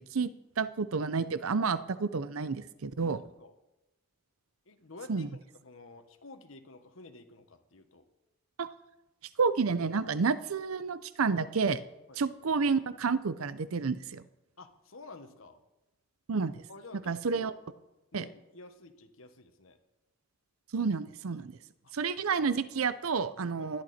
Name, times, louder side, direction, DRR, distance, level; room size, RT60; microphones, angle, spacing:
voice 1, 0.6-3.2 5.1-5.3 8.6-8.7 9.4-11.8 12.2-14.2 16.3-16.6 17.1-17.5 18.1-18.2 20.7-21.5 21.9-23.8, right 5 dB, 80° right, 15 dB, 0.6 m, -30 dB
voice 2, 3.0-3.5 4.6-8.0 12.1-12.2 14.6-15.6 16.7-17.5 18.1-19.8 21.8-21.9 23.6-23.8, left 2 dB, 70° left, 8 dB, 1.4 m, -51 dB
17.0 x 11.5 x 4.3 m, 0.97 s
head